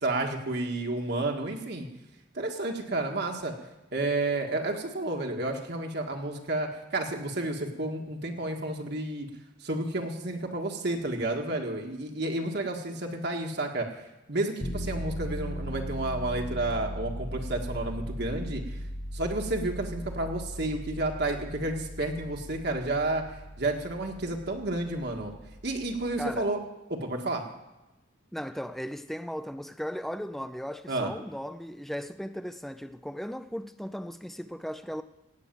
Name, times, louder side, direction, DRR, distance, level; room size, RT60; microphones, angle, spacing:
voice 1, 0.0-1.9 2.3-3.5 3.9-9.3 9.6-14.0 14.3-18.8 19.1-23.2 23.6-25.3 25.6-26.6 26.9-27.4 30.9-31.1, right 2 dB, 55° right, 1.6 m, -31 dB
sound 1, 14.6-26.5, equal, 15° left, 1.0 m, -38 dB
voice 2, 26.2-26.5 28.3-35.0, equal, ahead, 0.4 m, -37 dB
16.5 x 6.6 x 9.0 m
head